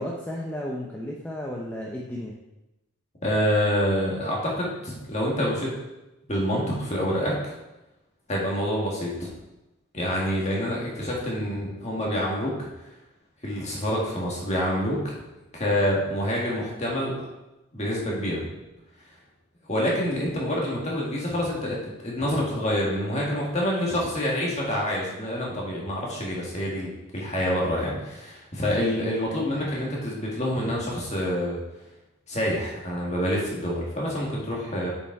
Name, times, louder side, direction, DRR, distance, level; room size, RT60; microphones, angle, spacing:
voice 1, 0.0-2.3, left 1 dB, 5° left, -3 dB, 0.6 m, -33 dB
voice 2, 3.2-5.7 6.3-7.5 8.3-9.3 9.9-12.7 13.4-15.2 15.5-17.2 17.7-18.5 19.7-31.6 32.3-34.9, equal, 30° left, -4 dB, 1.9 m, -27 dB
6.8 x 5.2 x 4.7 m, 0.98 s
head